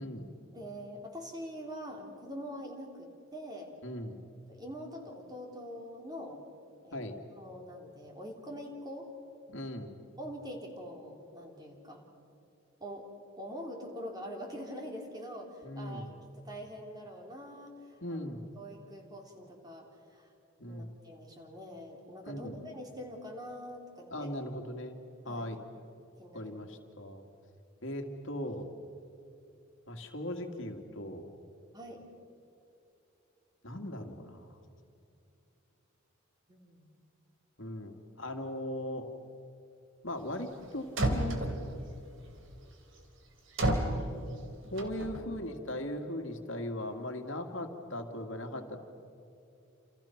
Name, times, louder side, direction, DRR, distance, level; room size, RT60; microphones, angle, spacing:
voice 1, 0.0-0.3 3.8-4.2 6.9-7.2 9.5-9.9 15.6-16.2 18.0-18.5 20.6-20.9 22.3-22.6 24.1-25.0 25.2-25.6 26.3-27.3 27.8-28.7 29.9-31.3 33.6-34.6 37.6-39.1 40.0-41.5 44.7-48.8, left 1 dB, 65° left, 4 dB, 2.3 m, -39 dB
voice 2, 0.5-3.7 4.5-6.5 6.8-7.0 7.4-9.1 10.2-12.1 12.8-13.1 13.4-16.1 16.4-18.2 18.5-20.3 20.7-24.3 25.3-25.5 26.2-26.6 31.7-32.0 36.5-36.9 44.6-44.9, equal, 20° right, 1 dB, 3.6 m, -44 dB
sound 1, 40.6-40.7 41.0-41.8 43.6-44.0 44.8-45.2, right 1 dB, 65° right, 3.2 m, -29 dB
29.0 x 28.5 x 5.9 m, 2.7 s
head